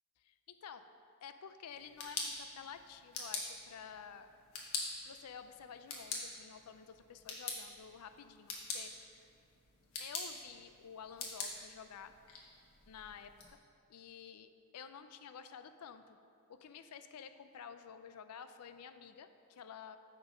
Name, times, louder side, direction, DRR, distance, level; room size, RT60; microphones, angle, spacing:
voice 1, 0.2-0.9 1.2-4.3 5.0-9.3 10.0-12.1 12.9-13.6 13.9-16.2 16.5-20.0, left 7 dB, 85° left, 10 dB, 0.4 m, -51 dB
sound 1, 1.7-13.5, left 4 dB, 65° left, 1.3 m, -45 dB
7.3 x 5.9 x 5.1 m, 2.5 s
head